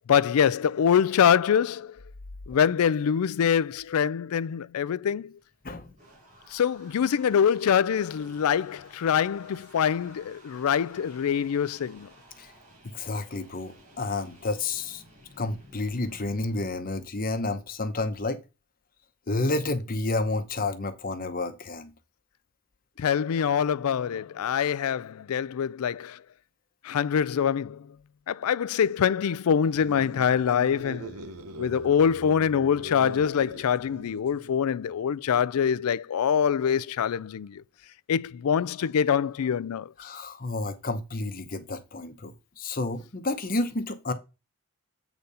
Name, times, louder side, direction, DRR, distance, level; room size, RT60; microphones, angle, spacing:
voice 1, 0.1-1.9 2.5-5.3 6.5-12.1 23.0-26.2 26.8-27.8 28.3-31.1 31.6-37.6 38.1-39.9, left 7 dB, 80° left, 0.4 m, -24 dB
sound 1, 5.4-16.6, right 1 dB, 30° right, 5.5 m, -54 dB
voice 2, 12.8-15.0 15.4-18.4 19.3-21.9 40.0-44.1, left 2 dB, 40° left, 0.9 m, -30 dB
sound 2, 29.5-34.6, right 1 dB, 85° right, 0.8 m, -43 dB
8.4 x 4.0 x 5.5 m
head